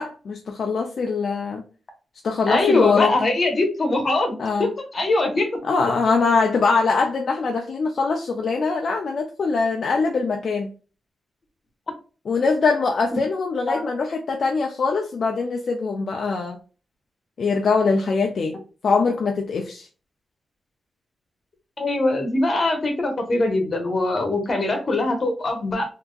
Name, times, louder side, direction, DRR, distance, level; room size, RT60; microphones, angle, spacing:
voice 1, 0.0-1.6 2.2-3.1 4.4-4.7 5.6-10.7 12.3-16.6 17.4-18.6 18.8-19.9, left 4 dB, 65° left, 0.5 m, -22 dB
voice 2, 2.5-5.5 13.7-13.9 21.8-25.8, left 2 dB, 45° left, 1.2 m, -22 dB
3.4 x 2.8 x 2.4 m
cardioid pair, 90°, 0 cm